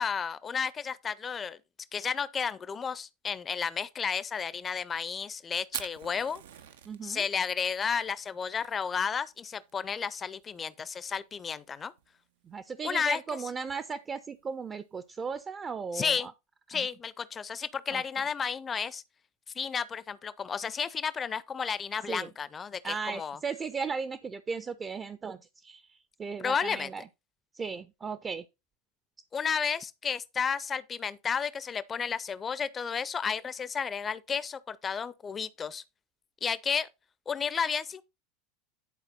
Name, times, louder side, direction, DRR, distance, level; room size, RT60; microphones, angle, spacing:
voice 1, 0.0-1.6 1.9-6.4 7.0-11.9 12.8-13.2 15.9-16.3 16.7-19.0 19.6-23.4 26.4-26.9 29.3-35.8 36.4-36.9 37.3-38.0, left 6 dB, 25° left, 0.7 m, -32 dB
Fire, 5.6-15.4, right 10 dB, 65° right, 0.8 m, -48 dB
voice 2, 6.8-7.2 12.4-16.2 16.7-16.9 17.9-18.0 22.1-22.3 22.8-27.0 27.5-28.4, right 5 dB, 25° right, 0.7 m, -36 dB
10.5 x 4.7 x 4.1 m
figure-of-eight pair, 80°, 0 cm